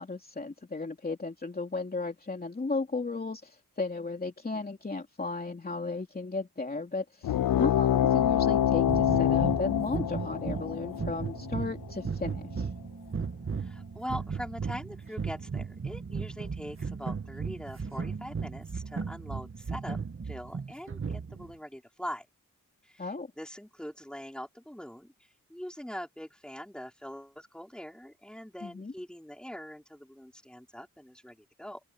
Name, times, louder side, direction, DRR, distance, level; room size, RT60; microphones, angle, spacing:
voice 1, 0.0-12.7 23.0-23.3 28.6-28.9, left 3 dB, 25° left, 2.9 m, -35 dB
sound 1, 7.2-12.3, left 10 dB, 80° left, 0.5 m, -26 dB
sound 2, 8.9-21.5, right 5 dB, 40° right, 1.9 m, -36 dB
voice 2, 13.6-20.0 20.2-22.3 22.8-23.1 23.4-25.1 25.5-31.8, equal, 5° left, 5.0 m, -42 dB
open air
wide cardioid pair, 170°, 34 cm